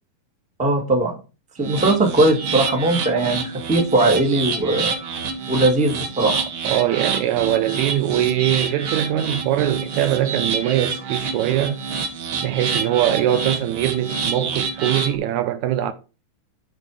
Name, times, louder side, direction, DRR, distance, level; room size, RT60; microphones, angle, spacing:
voice 1, 0.6-1.1 1.6-4.9 5.5-6.4, right 2 dB, 5° right, 1.1 m, -19 dB
sound 1, 1.6-15.2, right 5 dB, 55° right, 1.6 m, -27 dB
voice 2, 6.6-11.8 12.4-15.9, right 12 dB, 75° right, 1.9 m, -22 dB
8.0 x 4.6 x 6.2 m
omnidirectional pair, 3.5 m